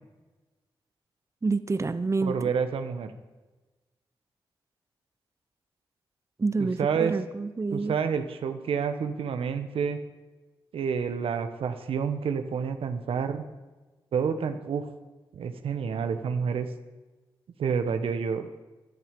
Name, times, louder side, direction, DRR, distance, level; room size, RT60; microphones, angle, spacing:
voice 1, 1.4-2.5 6.4-8.0, right 3 dB, 30° right, 13 dB, 0.7 m, -28 dB
voice 2, 2.2-3.1 6.6-7.1 7.7-10.0 10.7-13.4 14.1-14.9 15.3-16.7 17.6-18.5, right 6 dB, 80° right, 9 dB, 1.1 m, -29 dB
16.0 x 11.0 x 5.2 m, 1.2 s
cardioid pair, 50°, 9 cm